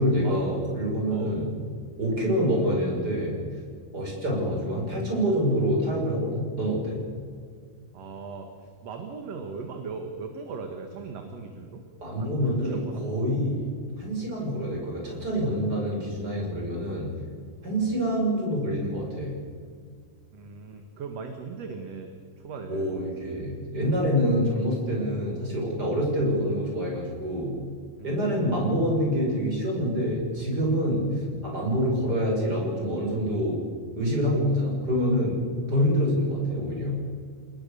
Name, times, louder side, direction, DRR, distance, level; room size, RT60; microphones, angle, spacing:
voice 1, 0.0-1.6 2.0-3.4 3.9-7.1 12.0-17.1 17.6-19.4 22.7-27.6 28.0-33.7 33.9-37.0, equal, 30° right, -1 dB, 7.1 m, -26 dB
voice 2, 7.9-11.8 12.2-13.1 20.3-23.0 28.0-28.2, right 4 dB, 60° right, 5 dB, 2.8 m, -39 dB
29.0 x 20.0 x 7.0 m, 2.1 s
omnidirectional pair, 3.3 m